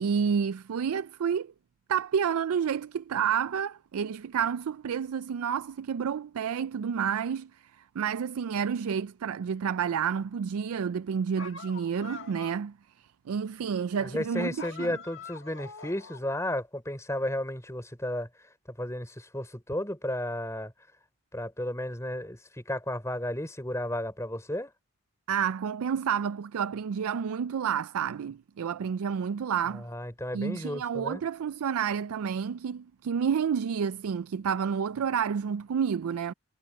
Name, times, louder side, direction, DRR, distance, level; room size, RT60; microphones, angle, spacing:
voice 1, 0.0-1.5 1.9-15.0 25.3-29.9 30.3-36.3, right 7 dB, 80° right, 0.4 m, -30 dB
sound 1, 11.4-12.7 14.6-16.4, left 4 dB, 60° left, 1.5 m, -44 dB
voice 2, 14.0-20.7 21.3-24.7 29.7-31.2, left 1 dB, 15° left, 4.3 m, -33 dB
head